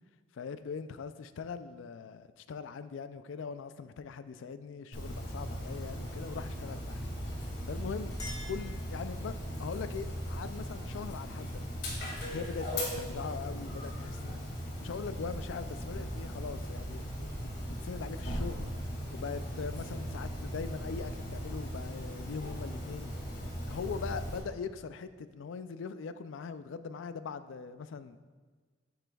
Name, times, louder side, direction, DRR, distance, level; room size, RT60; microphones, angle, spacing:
voice 1, 0.3-7.0 7.7-8.2 8.4-11.6 12.3-14.4 14.8-17.3 17.8-18.7 19.1-23.1 23.7-28.2, left 5 dB, 85° left, 12 dB, 0.4 m, -41 dB
Dog, 4.9-24.4, equal, 60° left, 2.2 m, -38 dB
Chink clink, 8.1-9.5, left 2 dB, 20° left, 1.2 m, -48 dB
8.9 x 7.8 x 2.3 m, 1.4 s
head